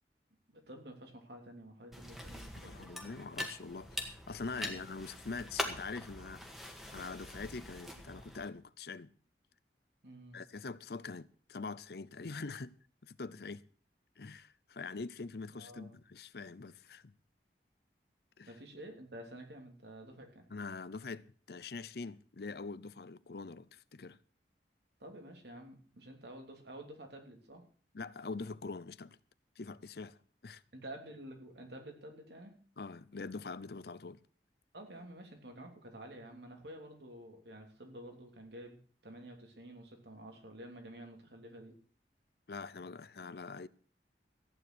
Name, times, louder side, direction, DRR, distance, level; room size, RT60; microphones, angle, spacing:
voice 1, 0.5-2.9 10.0-10.4 15.5-15.9 18.5-20.5 25.0-27.6 30.7-32.5 34.7-41.7, right 1 dB, 75° right, 3.3 m, -50 dB
sound 1, 1.9-8.5, left 1 dB, ahead, 1.8 m, -43 dB
voice 2, 2.5-6.4 6.9-9.1 10.3-12.7 13.0-13.7 14.2-17.1 18.4-18.5 20.5-24.2 27.9-29.2 29.6-30.2 30.4-30.6 32.8-34.2 42.5-43.7, left 4 dB, 60° left, 0.6 m, -44 dB
14.5 x 9.6 x 6.2 m
head